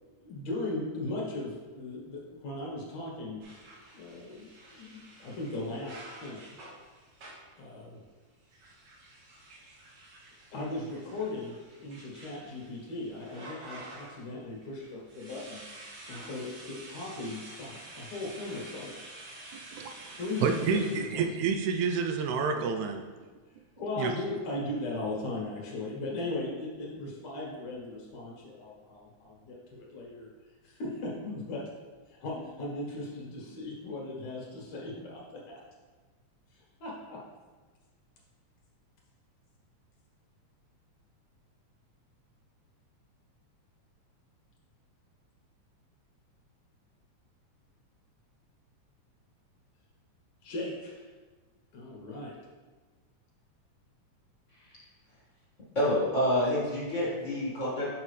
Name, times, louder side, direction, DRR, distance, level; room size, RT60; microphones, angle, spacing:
voice 1, 0.2-3.4 3.9-6.5 7.6-8.0 10.5-15.6 16.1-18.9 20.2-21.2 23.8-30.3 30.6-31.7 32.1-35.2 35.5-35.6 36.5-37.2 50.4-51.1 51.7-52.4, left 2 dB, 65° left, -4 dB, 2.5 m, -38 dB
sound 1, 3.4-7.6 8.4-14.3 14.6-21.2, right 2 dB, 60° right, 1.1 m, -49 dB
voice 2, 19.5-23.0 24.0-24.1, right 5 dB, 80° right, 4 dB, 1.9 m, -29 dB
voice 3, 55.7-57.9, left 1 dB, 35° left, -8 dB, 1.4 m, -28 dB
7.3 x 5.1 x 3.2 m, 1.3 s
omnidirectional pair, 3.5 m